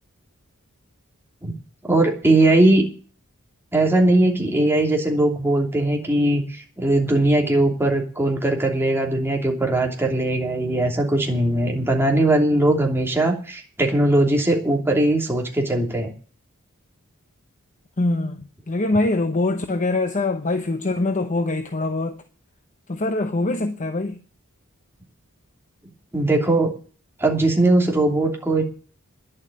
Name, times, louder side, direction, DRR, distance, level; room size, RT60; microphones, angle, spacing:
voice 1, 1.8-2.8 3.7-16.1 26.1-26.7 27.2-28.6, right 1 dB, 10° right, 2.9 m, -20 dB
voice 2, 18.0-18.4 18.7-22.2 22.9-24.2, left 2 dB, 35° left, 0.8 m, -23 dB
11.0 x 7.7 x 9.9 m
head